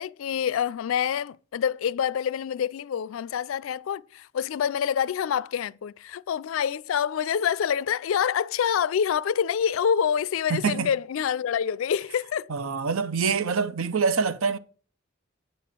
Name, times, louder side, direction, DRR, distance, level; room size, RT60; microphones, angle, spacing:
voice 1, 0.0-12.5, left 8 dB, 80° left, 0.3 m, -26 dB
voice 2, 10.5-10.9 12.5-14.6, right 5 dB, 90° right, 0.7 m, -25 dB
9.2 x 4.3 x 7.4 m
head